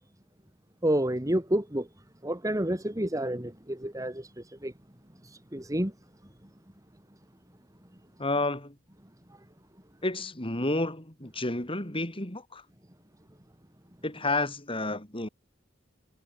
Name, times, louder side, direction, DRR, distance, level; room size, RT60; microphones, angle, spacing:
voice 1, 0.8-1.9 2.2-4.7 5.2-5.9 9.3-9.4, right 1 dB, 20° right, 2.8 m, -29 dB
voice 2, 8.2-8.7 10.0-12.6 14.0-15.3, left 2 dB, 30° left, 5.3 m, -30 dB
head